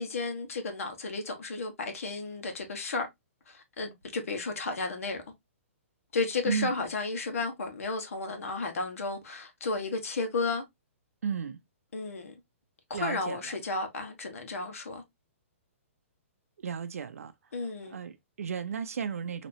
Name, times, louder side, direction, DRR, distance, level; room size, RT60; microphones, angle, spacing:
voice 1, 0.0-3.1 3.5-5.2 6.1-10.6 11.9-12.3 12.9-15.0 17.5-18.0, left 3 dB, 75° left, 1.3 m, -33 dB
voice 2, 11.2-11.6 12.9-13.5 16.6-17.3 17.9-19.5, right 7 dB, 85° right, 0.5 m, -34 dB
4.2 x 2.9 x 2.6 m
hypercardioid pair, 155°, 8 cm